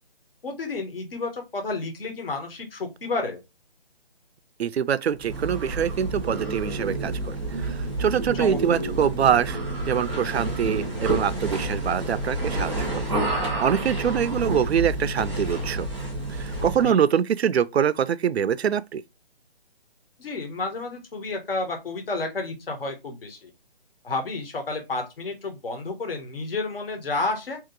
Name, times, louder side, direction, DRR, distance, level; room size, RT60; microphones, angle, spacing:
voice 1, 0.4-3.4 8.4-8.6 16.8-17.0 20.2-23.5 24.0-27.6, left 3 dB, 65° left, 1.3 m, -31 dB
voice 2, 4.6-9.6 9.9-15.9 16.3-19.0, right 8 dB, 90° right, 0.5 m, -24 dB
sound 1, 5.2-16.9, right 2 dB, 5° right, 0.7 m, -29 dB
2.9 x 2.8 x 3.8 m
hypercardioid pair, 165°, 31 cm